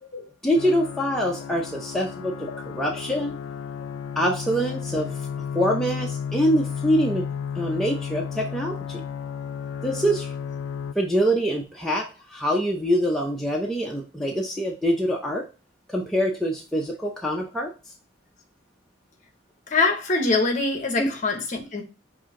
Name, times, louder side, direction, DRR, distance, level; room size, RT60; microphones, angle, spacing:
voice 1, 0.4-3.3 4.2-5.2 5.5-7.3 7.5-9.0 9.8-10.3 11.0-15.4 15.9-17.7 21.0-21.1, equal, ahead, 0.5 m, -25 dB
sound 1, 0.5-10.9, left 7 dB, 80° left, 0.3 m, -33 dB
voice 2, 19.7-21.8, left 3 dB, 40° left, 0.8 m, -24 dB
5.5 x 2.6 x 3.6 m
head